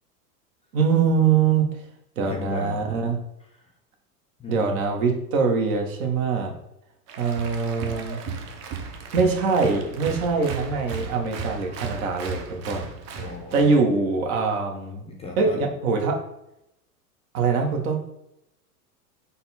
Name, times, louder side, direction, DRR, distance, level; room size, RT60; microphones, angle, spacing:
voice 1, 0.7-1.6 2.2-3.2 4.5-6.5 7.2-8.2 9.1-12.8 13.5-15.0 15.4-16.2 17.3-18.0, right 5 dB, 65° right, 3 dB, 1.1 m, -23 dB
voice 2, 2.2-2.8 4.4-4.7 13.2-13.7 15.0-15.6, left 3 dB, 15° left, 0 dB, 0.5 m, -36 dB
Applause, 7.1-13.7, right 5 dB, 35° right, 0.6 m, -35 dB
4.0 x 2.3 x 4.1 m, 0.82 s
hypercardioid pair, 100°, 46 cm